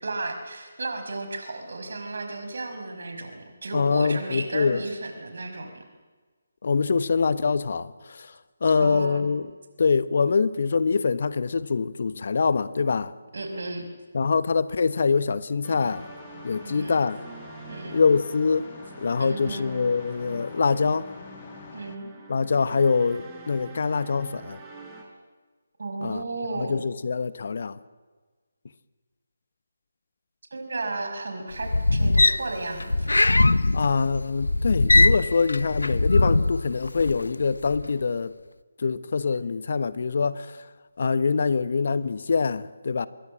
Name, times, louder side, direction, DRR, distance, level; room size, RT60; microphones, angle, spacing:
voice 1, 0.0-5.8 8.8-9.3 13.3-13.9 16.6-17.0 17.7-18.0 19.2-19.7 21.7-22.1 25.8-26.9 30.5-33.2 33.5-33.6, right 2 dB, 65° right, 5.7 m, -34 dB
voice 2, 3.7-4.8 6.6-8.3 8.6-9.5 9.8-13.1 14.1-16.0 16.4-17.2 17.8-18.7 19.0-21.0 22.3-24.6 26.0-26.2 26.6-27.8 33.7-38.3 38.8-40.6 41.0-43.1, left 5 dB, 55° left, 1.1 m, -24 dB
sound 1, 15.6-25.0, right 3 dB, 15° right, 5.1 m, -45 dB
sound 2, 15.8-22.0, left 7 dB, 40° left, 1.7 m, -46 dB
sound 3, 31.5-37.3 37.6-37.9, left 2 dB, 80° left, 0.9 m, -21 dB
26.0 x 22.0 x 7.5 m
figure-of-eight pair, 150°, 0 cm